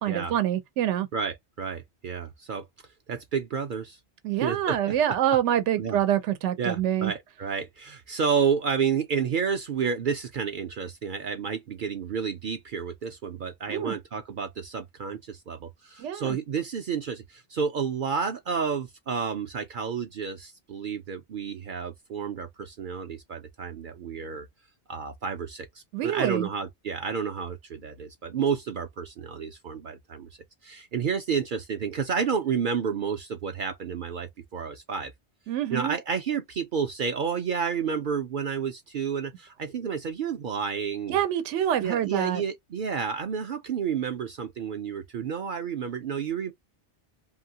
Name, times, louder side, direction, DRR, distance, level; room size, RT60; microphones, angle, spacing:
voice 1, 0.0-1.1 4.2-7.1 13.7-13.9 16.0-16.4 25.9-26.5 35.5-36.0 41.1-42.4, right 11 dB, 85° right, 0.9 m, -26 dB
voice 2, 1.1-2.7 3.1-4.0 4.4-5.2 5.8-6.0 6.6-24.5 24.9-30.3 30.6-35.1 35.7-41.2 41.8-46.5, right 6 dB, 60° right, 0.6 m, -30 dB
2.9 x 2.7 x 2.7 m
omnidirectional pair, 1.2 m